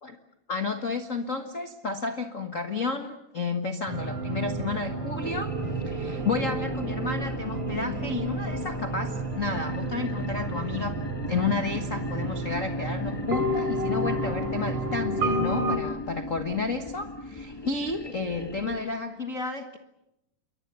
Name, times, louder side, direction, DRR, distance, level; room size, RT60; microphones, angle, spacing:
voice 1, 0.5-11.0 11.3-19.8, left 4 dB, 45° left, 6 dB, 1.0 m, -31 dB
sound 1, 3.9-15.8, right 1 dB, 50° right, 3.8 m, -31 dB
sound 2, 5.2-18.8, left 1 dB, 15° left, 1.1 m, -37 dB
29.0 x 23.5 x 6.9 m, 0.88 s
omnidirectional pair, 3.6 m